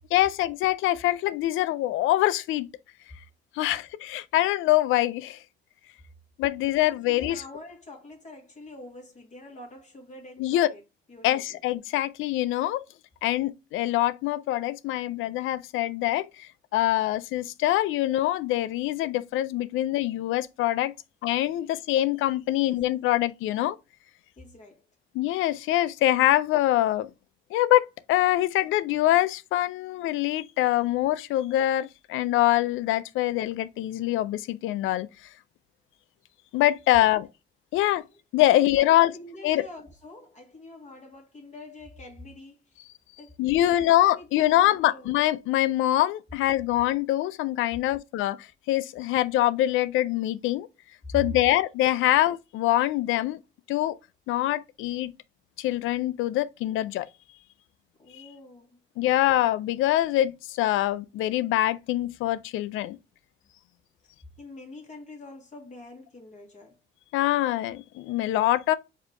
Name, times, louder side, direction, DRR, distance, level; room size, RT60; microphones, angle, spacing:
voice 1, 0.1-2.7 3.6-5.4 6.4-7.4 10.4-10.7 11.2-12.8 13.2-20.9 21.2-23.8 25.1-27.1 27.5-35.1 36.5-37.3 37.7-38.0 38.3-39.1 39.4-39.6 43.4-48.4 48.7-50.7 51.1-53.4 53.7-54.0 54.3-55.1 55.6-57.1 58.2-58.3 59.0-63.0 67.1-68.8, left 14 dB, 90° left, 0.4 m, -24 dB
voice 2, 6.8-10.8 11.1-11.6 22.5-22.8 24.4-24.8 38.1-38.2 38.5-42.8 43.2-45.1 51.0-51.5 58.0-58.8 64.4-66.8, left 1 dB, 35° left, 1.9 m, -44 dB
4.8 x 2.8 x 3.3 m
cardioid pair, 90°, 20 cm